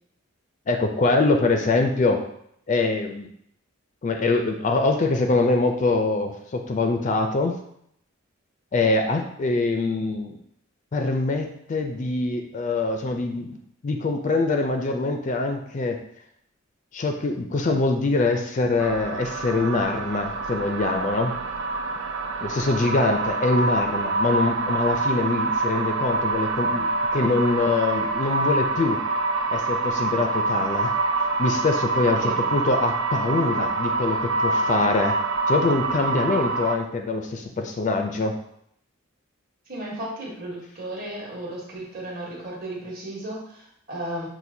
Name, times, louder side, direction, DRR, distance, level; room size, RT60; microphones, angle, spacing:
voice 1, 0.7-2.2 2.7-3.3 4.0-7.6 8.7-10.4 10.9-13.6 13.8-16.0 16.9-21.3 22.4-29.0 29.5-30.9 31.4-35.2 35.5-38.3, left 3 dB, 35° left, 4 dB, 0.3 m, -24 dB
sound 1, 18.8-36.8, right 3 dB, 70° right, 0.4 m, -26 dB
voice 2, 39.7-44.3, right 1 dB, 45° right, -3 dB, 1.1 m, -34 dB
5.8 x 2.5 x 2.6 m, 0.72 s
head